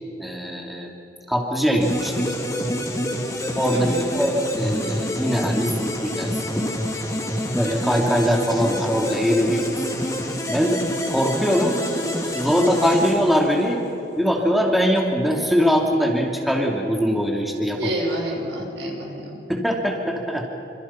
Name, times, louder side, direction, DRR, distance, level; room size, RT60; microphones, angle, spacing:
voice 1, 0.2-0.9 1.3-2.3 3.6-6.7 7.5-9.7 10.5-10.8 11.1-11.8 12.3-13.8 14.2-17.9 18.6-18.7 19.5-20.5, equal, ahead, 0 dB, 2.6 m, -22 dB
sound 1, 1.8-13.9, equal, 20° left, 3.1 m, -27 dB
voice 2, 3.7-4.1 17.7-19.5, right 1 dB, 80° right, 1 dB, 6.0 m, -29 dB
27.5 x 27.0 x 5.9 m, 3.0 s
head